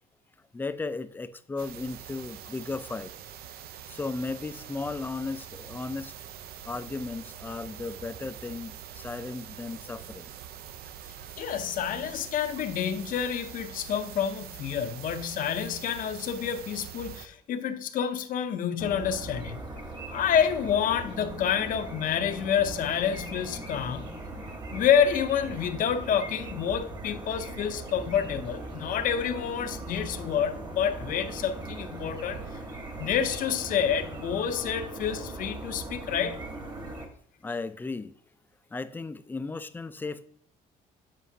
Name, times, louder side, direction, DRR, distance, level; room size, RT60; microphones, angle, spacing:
voice 1, 0.5-3.1 3.9-6.1 6.7-10.3 37.4-38.1 38.7-40.3, left 3 dB, 10° left, 0.4 m, -35 dB
sound 1, 1.6-17.3, right 10 dB, 65° right, 0.5 m, -44 dB
voice 2, 11.4-19.6 20.1-24.2 24.7-32.4 33.0-36.4, left 8 dB, 55° left, 0.6 m, -28 dB
sound 2, 18.8-37.1, right 2 dB, 25° right, 1.2 m, -40 dB
7.4 x 5.3 x 2.7 m
cardioid pair, 110°, 17 cm